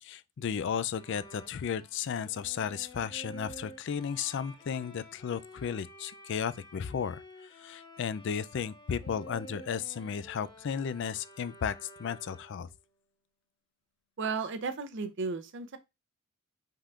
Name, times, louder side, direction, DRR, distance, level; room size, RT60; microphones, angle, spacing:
voice 1, 0.0-7.2 7.6-11.7 12.0-12.7, left 7 dB, 55° left, 0.3 m, -34 dB
Bowed string instrument, 0.9-12.8, equal, 20° left, 0.9 m, -51 dB
voice 2, 14.2-15.8, right 4 dB, 60° right, 0.6 m, -34 dB
5.6 x 3.6 x 2.4 m
head